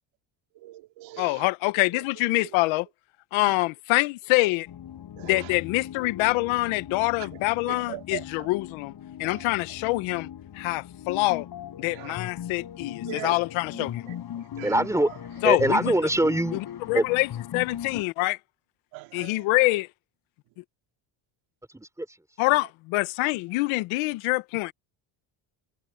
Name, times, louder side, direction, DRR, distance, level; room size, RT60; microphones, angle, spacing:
voice 1, 0.6-1.5 3.4-3.5 5.2-5.5 7.7-8.2 9.2-9.4 11.8-12.2 13.1-13.4 13.8-14.8 18.9-19.4, right 19 dB, 85° right, 2.4 m, -40 dB
voice 2, 1.2-2.9 3.3-4.7 5.2-8.9 9.2-10.3 10.5-11.5 11.8-14.0 15.4-15.9 16.5-16.6 16.9-18.4 19.1-19.9 22.4-24.7, left 21 dB, 90° left, 1.1 m, -25 dB
sound 1, 4.7-18.0, left 10 dB, 55° left, 7.5 m, -39 dB
voice 3, 14.6-15.1 15.4-16.6 16.9-17.0 21.7-22.2, right 1 dB, 5° right, 3.7 m, -23 dB
cardioid pair, 95°, 46 cm